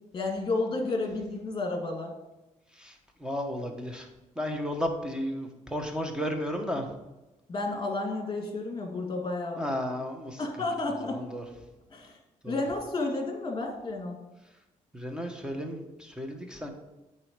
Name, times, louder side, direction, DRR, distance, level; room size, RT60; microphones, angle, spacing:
voice 1, 0.1-2.1 7.5-9.7 10.4-11.2 11.9-12.1 12.5-14.2, left 2 dB, 30° left, 2 dB, 2.0 m, -31 dB
voice 2, 2.7-4.1 4.3-6.9 9.6-10.7 11.1-11.4 12.4-12.6 14.9-16.7, equal, 5° right, 4 dB, 1.2 m, -34 dB
8.7 x 4.2 x 5.2 m, 1.0 s
cardioid pair, 95°, 13 cm